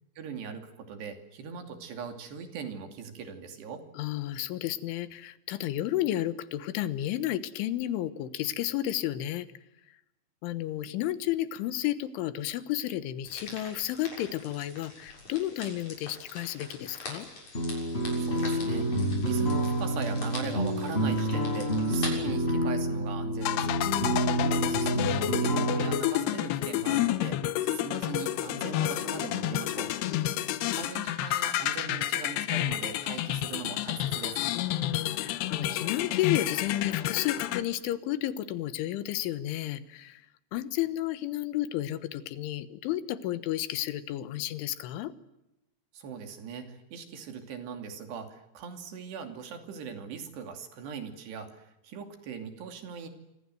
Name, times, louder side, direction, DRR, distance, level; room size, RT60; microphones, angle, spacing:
voice 1, 0.2-3.8 18.1-23.8 24.4-29.9 30.7-34.4 45.9-53.1, right 6 dB, 65° right, 6 dB, 4.7 m, -40 dB
voice 2, 4.0-9.5 10.4-17.3 23.8-24.4 30.1-30.4 34.6-40.2 40.5-45.1, left 13 dB, 90° left, 13 dB, 3.7 m, -32 dB
sound 1, 13.2-22.1, left 2 dB, 40° left, 8.0 m, -44 dB
sound 2, 17.6-26.0, right 1 dB, 15° left, 5.3 m, -28 dB
sound 3, 23.4-37.6, left 13 dB, 70° left, 2.9 m, -30 dB
27.5 x 25.5 x 7.8 m, 0.91 s
omnidirectional pair, 5.4 m